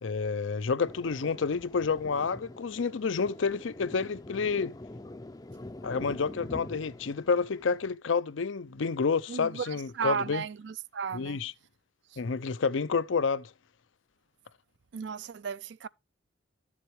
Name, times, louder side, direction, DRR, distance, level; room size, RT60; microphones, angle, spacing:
voice 1, 0.0-4.8 5.8-10.4 11.1-11.5 12.2-13.5, left 5 dB, 80° left, 0.6 m, -29 dB
Thunder, 0.9-7.9, left 1 dB, 20° left, 0.5 m, -45 dB
voice 2, 9.3-11.4 12.1-12.2 14.9-15.9, right 6 dB, 65° right, 0.4 m, -35 dB
13.0 x 7.4 x 3.1 m
head